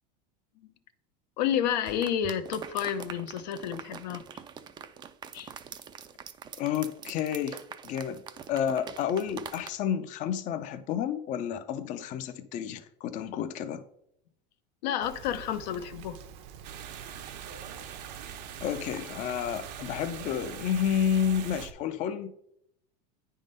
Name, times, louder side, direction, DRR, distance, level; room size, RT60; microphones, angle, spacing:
voice 1, 1.4-4.2 5.3-5.5 14.8-16.2, left 9 dB, 80° left, 0.7 m, -30 dB
sound 1, 1.9-9.7, right 8 dB, 20° right, 0.4 m, -44 dB
voice 2, 6.6-8.2 8.5-13.8 18.6-22.3, left 8 dB, 35° left, 0.5 m, -30 dB
Rain, 15.0-21.7, right 8 dB, 55° right, 0.7 m, -47 dB
sound 2, 16.6-21.7, right 9 dB, 75° right, 1.0 m, -43 dB
9.1 x 3.7 x 5.3 m
supercardioid pair, 140°, 21 cm